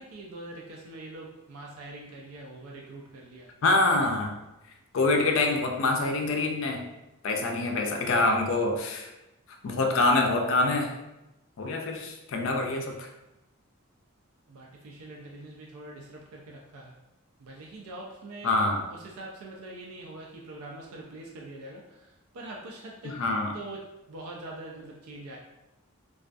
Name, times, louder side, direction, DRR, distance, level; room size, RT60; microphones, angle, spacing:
voice 1, 0.0-3.5 14.5-17.0 17.4-18.6 18.9-23.2 23.5-25.4, right 2 dB, 85° right, -1 dB, 0.4 m, -43 dB
voice 2, 3.6-4.4 4.9-6.9 7.2-9.1 9.6-10.9 11.6-13.1 18.4-18.9 23.0-23.6, left 2 dB, 65° left, 2 dB, 0.4 m, -25 dB
2.3 x 2.2 x 2.5 m, 0.96 s
head